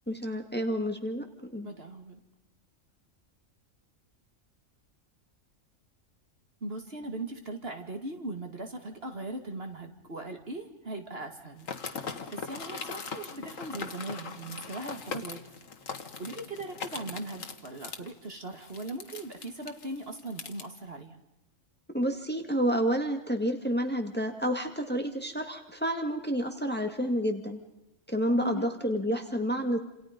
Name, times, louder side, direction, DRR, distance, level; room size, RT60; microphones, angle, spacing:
voice 1, 0.1-1.3 1.5-1.7 21.9-27.6 28.1-29.8, equal, 10° left, 5 dB, 2.0 m, -29 dB
voice 2, 1.6-2.2 6.6-15.4 16.2-21.2 28.4-28.7, right 2 dB, 50° right, 5 dB, 2.5 m, -39 dB
sound 1, 11.6-20.6, left 5 dB, 80° left, 1.8 m, -40 dB
29.0 x 27.5 x 5.3 m, 0.92 s
omnidirectional pair, 1.3 m